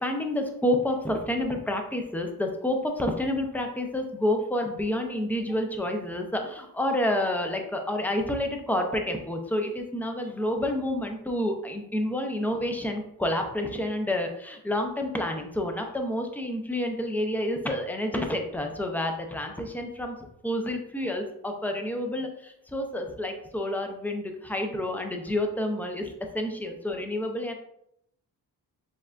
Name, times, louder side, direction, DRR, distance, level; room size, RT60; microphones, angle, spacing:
voice 1, 0.0-20.2 20.4-27.5, left 1 dB, 5° left, 3 dB, 0.6 m, -29 dB
6.6 x 2.4 x 2.4 m, 0.77 s
cardioid pair, 70°, 43 cm